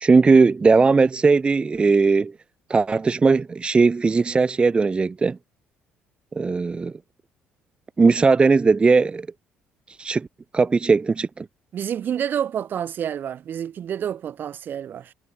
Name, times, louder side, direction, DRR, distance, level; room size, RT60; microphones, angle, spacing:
voice 1, 0.0-2.3 2.7-5.4 6.3-6.9 8.0-9.3 9.9-10.3 10.5-11.5, right 4 dB, 25° right, 0.6 m, -18 dB
voice 2, 11.7-15.1, right 9 dB, 55° right, 1.8 m, -28 dB
supercardioid pair, 75°, 4 cm